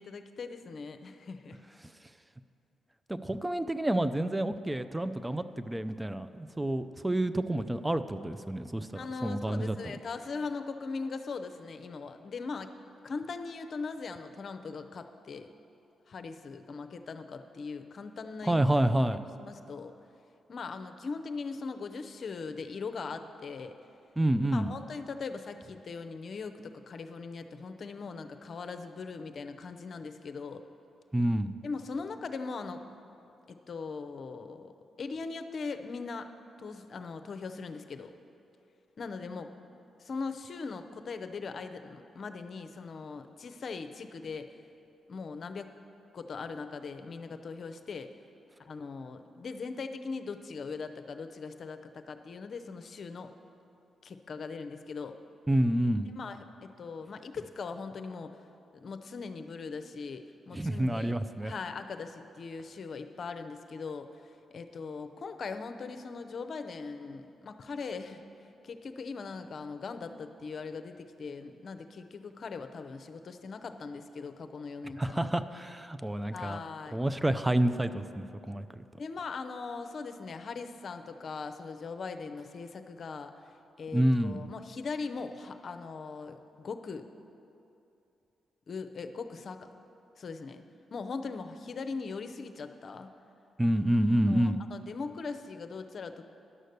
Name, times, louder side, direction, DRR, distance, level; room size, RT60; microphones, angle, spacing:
voice 1, 0.0-1.6 8.9-12.7 13.0-15.5 16.1-18.5 19.1-19.9 20.5-23.7 24.4-30.6 31.6-32.8 33.5-34.7 35.0-36.3 36.6-38.1 39.0-39.5 40.0-44.5 45.1-45.7 46.1-48.1 48.6-53.3 54.0-55.2 56.1-58.3 58.7-64.2 64.5-68.2 68.6-75.3 76.3-77.0 79.0-83.3 83.8-87.1 88.7-89.7 90.2-90.6 90.9-93.1 94.3-96.2, left 4 dB, 55° left, 8 dB, 0.7 m, -40 dB
voice 2, 3.1-9.9 18.4-19.2 24.2-24.7 31.1-31.5 55.5-56.1 60.5-61.5 75.0-76.6 76.9-78.8 83.9-84.4 93.6-94.6, right 1 dB, 15° right, 11 dB, 0.5 m, -28 dB
11.0 x 6.4 x 6.7 m, 2.7 s
hypercardioid pair, 45°, 0 cm